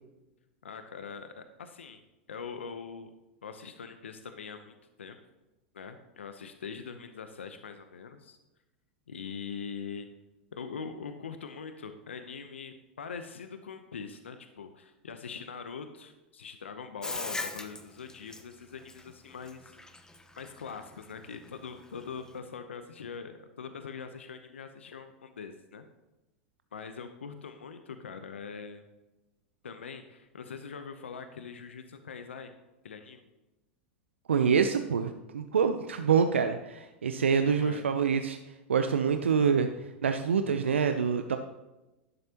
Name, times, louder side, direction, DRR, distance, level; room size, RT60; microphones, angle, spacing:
voice 1, 0.6-2.0 2.3-3.1 3.4-5.2 5.7-8.4 9.1-10.1 10.5-19.7 20.4-25.8 26.7-28.8 29.6-32.5 32.8-33.2 37.4-37.8, left 6 dB, 85° left, 8 dB, 0.8 m, -42 dB
Bathtub (filling or washing), 17.0-22.4, left 2 dB, 10° left, 1.0 m, -40 dB
voice 2, 34.3-38.4 38.7-39.7 40.0-41.4, right 6 dB, 85° right, 7 dB, 0.6 m, -26 dB
12.0 x 10.5 x 2.9 m, 1.0 s
hypercardioid pair, 95°, 6 cm